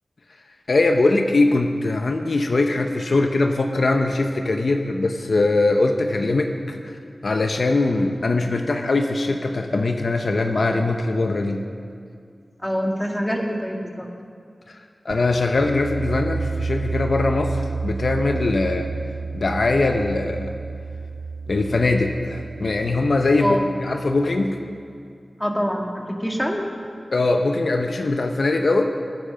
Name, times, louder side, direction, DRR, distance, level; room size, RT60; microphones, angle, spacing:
voice 1, 0.7-7.0 7.2-11.6 15.0-18.9 19.3-20.5 21.5-24.6 27.1-28.9, left 2 dB, 65° left, 4 dB, 0.8 m, -21 dB
voice 2, 12.6-14.1 23.4-23.7 25.4-26.6, equal, 5° left, 1 dB, 1.8 m, -25 dB
sound 1, 15.1-24.7, right 4 dB, 75° right, 0.3 m, -31 dB
20.0 x 8.7 x 5.2 m, 2.3 s
wide cardioid pair, 65°, 0 cm